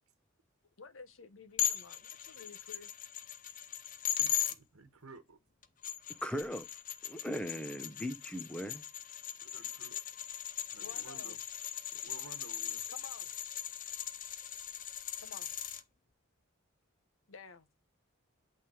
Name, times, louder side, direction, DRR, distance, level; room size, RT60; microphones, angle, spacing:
voice 1, 0.8-2.9 10.8-11.4 12.9-13.3 15.2-15.7 17.3-17.7, left 4 dB, 70° left, 1.0 m, -52 dB
sound 1, 1.6-4.5 5.6-15.8, left 11 dB, 40° left, 0.7 m, -39 dB
voice 2, 4.2-5.4 9.4-10.0 10.7-11.4 11.9-12.8, right 3 dB, 85° right, 1.2 m, -54 dB
voice 3, 6.2-6.7 7.0-8.9, equal, 5° left, 0.8 m, -38 dB
8.6 x 3.6 x 4.9 m
head